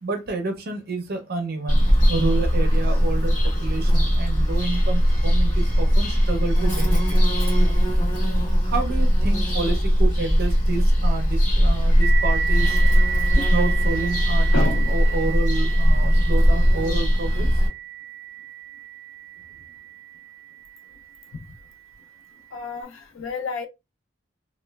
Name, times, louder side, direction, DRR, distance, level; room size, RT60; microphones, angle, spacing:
voice 1, 0.0-7.2 8.6-12.8 13.3-17.6, right 3 dB, 50° right, 0.5 m, -29 dB
Bird vocalization bird call bird song, 1.7-17.7, equal, 40° left, 1.5 m, -19 dB
sound 1, 12.0-21.2, right 10 dB, 10° left, 1.3 m, -32 dB
voice 2, 14.5-14.9 21.3-21.4 22.5-23.7, left 4 dB, 75° left, 0.4 m, -30 dB
2.9 x 2.1 x 2.2 m
head